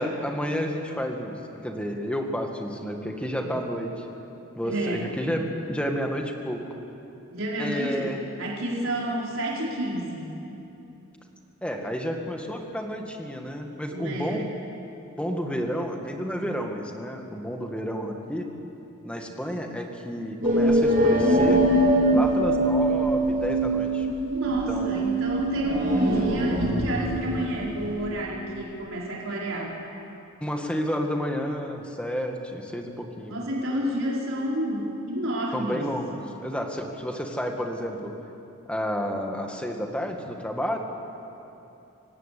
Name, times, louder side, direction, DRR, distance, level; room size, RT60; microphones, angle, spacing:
voice 1, 0.0-1.4 1.6-4.1 4.5-6.6 7.6-8.2 11.6-14.5 15.2-18.5 19.0-21.7 22.1-24.1 24.7-25.0 30.4-33.4 35.5-38.1 38.7-40.8, equal, 5° left, 2 dB, 1.9 m, -30 dB
voice 2, 4.6-5.1 7.3-8.1 8.4-10.4 13.9-14.4 24.3-29.7 33.3-35.8, equal, 65° right, -4 dB, 4.7 m, -29 dB
sound 1, 20.4-28.1, right 1 dB, 40° right, 3.9 m, -23 dB
27.5 x 17.5 x 8.5 m, 2.9 s
head